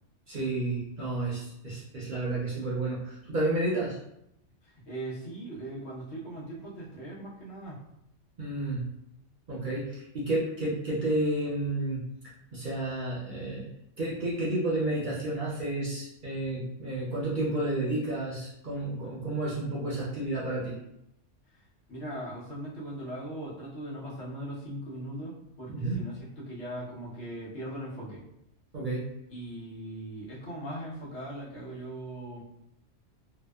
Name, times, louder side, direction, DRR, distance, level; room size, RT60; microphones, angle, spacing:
voice 1, 0.3-4.0 8.4-8.8 9.5-12.0 12.5-13.6 14.0-20.8 25.7-26.0 28.7-29.0, right 2 dB, 50° right, -7 dB, 0.6 m, -31 dB
voice 2, 4.6-7.8 21.5-21.6 21.9-28.2 29.3-32.4, right 1 dB, 65° left, -7 dB, 1.1 m, -39 dB
2.7 x 2.1 x 2.2 m, 0.81 s
omnidirectional pair, 1.3 m